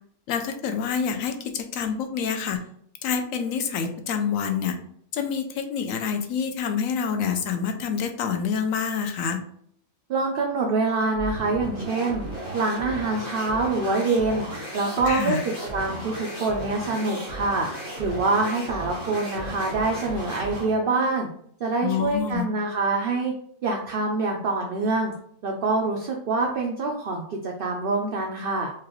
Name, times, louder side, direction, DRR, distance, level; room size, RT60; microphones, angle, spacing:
voice 1, 0.3-2.6 3.0-4.8 5.1-9.4 15.0-15.4 21.8-22.5, left 7 dB, 75° left, 6 dB, 1.0 m, -27 dB
voice 2, 10.1-12.2 12.5-14.5 14.7-15.4 15.7-21.3 21.6-23.3 23.6-25.1 25.4-28.7, right 3 dB, 65° right, 1 dB, 0.5 m, -25 dB
sound 1, 11.1-20.8, right 1 dB, 40° left, 1.3 m, -35 dB
4.6 x 2.4 x 3.0 m, 0.65 s
omnidirectional pair, 1.5 m